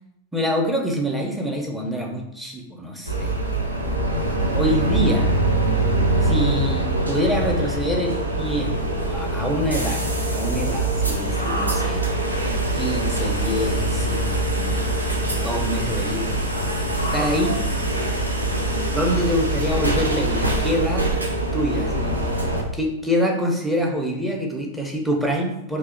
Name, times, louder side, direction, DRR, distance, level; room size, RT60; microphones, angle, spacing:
voice 1, 0.3-3.3 4.5-5.4 6.2-10.0 10.3-12.0 12.8-14.7 15.3-16.4 17.1-17.6 18.8-21.1 21.5-22.2 22.7-25.8, equal, 5° right, 0 dB, 0.6 m, -26 dB
sound 1, 3.0-22.6, right 1 dB, 85° right, 0.5 m, -23 dB
sound 2, 8.4-19.3, equal, 90° left, 0.4 m, -39 dB
2.8 x 2.0 x 3.7 m, 0.83 s
figure-of-eight pair, 90°, 0 cm